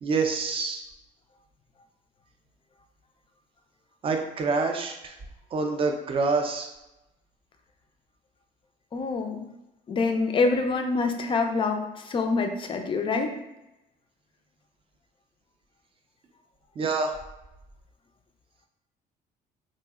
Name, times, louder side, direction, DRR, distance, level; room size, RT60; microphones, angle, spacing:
voice 1, 0.0-0.8 4.0-5.1 5.5-6.7 16.8-17.1, right 4 dB, 35° right, 4 dB, 0.4 m, -26 dB
voice 2, 8.9-9.5 9.9-13.3, left 4 dB, 30° left, 5 dB, 0.4 m, -26 dB
2.6 x 2.0 x 3.5 m, 0.94 s
cardioid pair, 110°, 17 cm